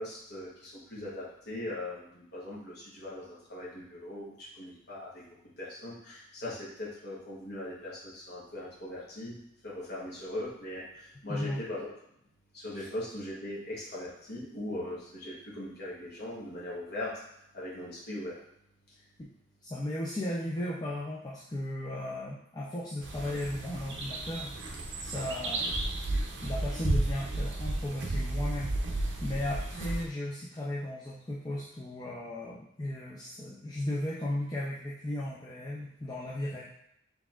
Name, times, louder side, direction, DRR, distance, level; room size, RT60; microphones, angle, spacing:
voice 1, 0.0-5.2 5.6-9.4 9.6-11.9 12.5-17.1 17.5-18.4, left 1 dB, 60° left, -7 dB, 1.0 m, -40 dB
voice 2, 11.3-11.6 12.7-12.9 19.2-19.3 19.6-25.9 26.4-36.6, left 1 dB, 20° left, -5 dB, 0.4 m, -36 dB
sound 1, 23.0-30.0, right 2 dB, 70° right, 0.6 m, -33 dB
4.2 x 3.4 x 2.4 m, 0.77 s
head